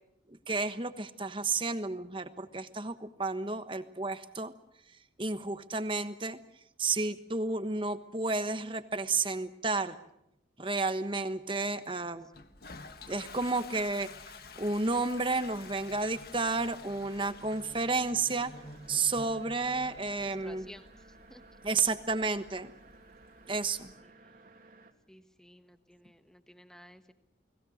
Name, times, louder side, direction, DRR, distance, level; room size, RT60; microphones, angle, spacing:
voice 1, 0.3-4.5 5.2-6.4 6.8-10.0 10.6-12.3 13.1-14.1 14.6-18.5 18.9-20.7 21.6-22.7 23.5-23.9, right 3 dB, 30° right, 10 dB, 1.3 m, -31 dB
sound 1, 10.2-10.3 10.6-10.7 11.0-20.6, equal, 40° left, 2.5 m, -55 dB
Toilet flush, 12.3-23.9, left 4 dB, 55° left, 1.6 m, -52 dB
sound 2, 17.1-24.9, right 2 dB, 50° right, 2.8 m, -57 dB
voice 2, 20.1-21.4 24.0-24.1 25.1-27.1, equal, 5° left, 8 dB, 1.3 m, -54 dB
30.0 x 20.5 x 6.5 m, 0.78 s
head